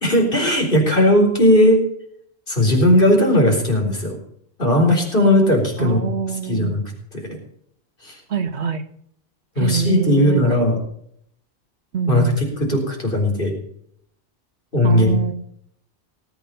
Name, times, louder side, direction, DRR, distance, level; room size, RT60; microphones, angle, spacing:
voice 1, 0.0-1.8 2.5-4.2 4.6-6.0 6.5-6.8 7.1-7.4 8.0-8.2 9.6-10.8 12.1-13.5 14.7-15.1, left 1 dB, 55° left, 1 dB, 4.2 m, -17 dB
voice 2, 5.8-6.8 8.3-8.8 9.6-10.7 11.9-12.5 14.8-15.3, right 6 dB, 85° right, 9 dB, 1.5 m, -24 dB
19.0 x 8.6 x 5.6 m, 0.69 s
omnidirectional pair, 1.1 m